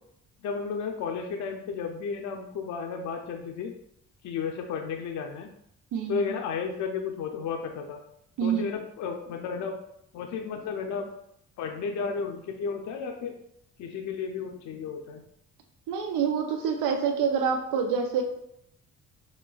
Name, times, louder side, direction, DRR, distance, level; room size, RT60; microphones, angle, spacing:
voice 1, 0.4-3.7 4.2-5.5 6.1-8.0 8.4-9.8 10.1-11.1 11.6-13.3 13.8-15.2, left 5 dB, 70° left, 3 dB, 0.6 m, -33 dB
voice 2, 5.9-6.3 8.4-8.7 15.9-18.2, right 6 dB, 90° right, 4 dB, 0.5 m, -27 dB
5.1 x 3.2 x 2.3 m, 0.75 s
cardioid pair, 90°, 30 cm